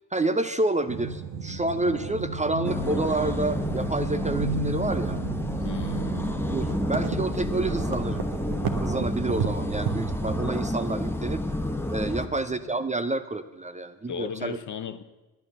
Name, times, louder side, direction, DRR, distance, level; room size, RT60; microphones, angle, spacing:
voice 1, 0.1-5.2 6.5-8.2 8.8-11.4 11.9-14.6, right 2 dB, 15° right, 10 dB, 0.6 m, -29 dB
sound 1, 0.9-10.6, right 5 dB, 60° right, 1.2 m, -33 dB
sound 2, 2.6-12.3, left 1 dB, 5° left, 1.0 m, -30 dB
voice 2, 5.5-6.3 12.0-12.6 14.1-15.0, left 7 dB, 45° left, 11 dB, 0.9 m, -37 dB
10.5 x 9.2 x 6.7 m, 1.1 s
hypercardioid pair, 45°, 42 cm